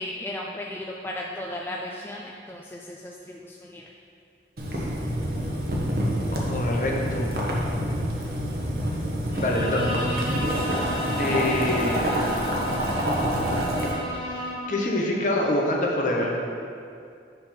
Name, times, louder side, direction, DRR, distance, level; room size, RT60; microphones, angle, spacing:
voice 1, 0.0-3.8 4.7-4.8, left 1 dB, 10° left, -2 dB, 0.3 m, -35 dB
Boiling, 4.6-13.9, equal, 60° right, 1.2 m, -27 dB
voice 2, 6.3-7.3 9.4-9.9 11.2-12.2 14.7-16.4, left 1 dB, 45° left, -1 dB, 1.1 m, -25 dB
Bowed string instrument, 9.3-14.8, left 1 dB, 30° left, 1.7 m, -33 dB
9.0 x 3.9 x 5.7 m, 2.4 s
head